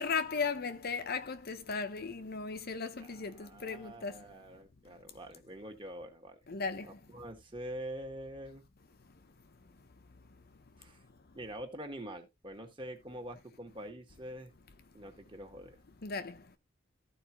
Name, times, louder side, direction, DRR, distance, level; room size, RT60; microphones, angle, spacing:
voice 1, 0.0-4.1 6.5-6.9 16.0-16.3, left 5 dB, 45° left, 0.8 m, -36 dB
voice 2, 3.0-6.4 6.8-8.6 10.8-11.0 11.3-14.5 14.9-15.8, right 1 dB, 25° right, 1.8 m, -45 dB
14.0 x 4.8 x 3.0 m
head